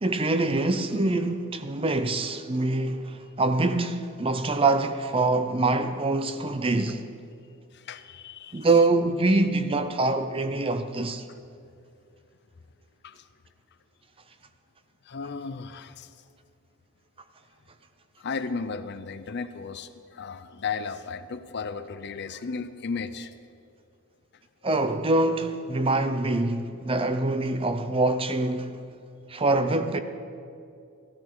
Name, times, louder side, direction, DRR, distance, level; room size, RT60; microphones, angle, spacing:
voice 1, 0.0-7.0 8.5-11.2 24.6-28.8 29.3-30.0, right 2 dB, 25° right, 0.6 m, -25 dB
voice 2, 7.7-8.7 13.0-13.2 15.0-16.1 18.2-23.4, left 5 dB, 50° left, 0.5 m, -35 dB
14.5 x 13.5 x 4.7 m
head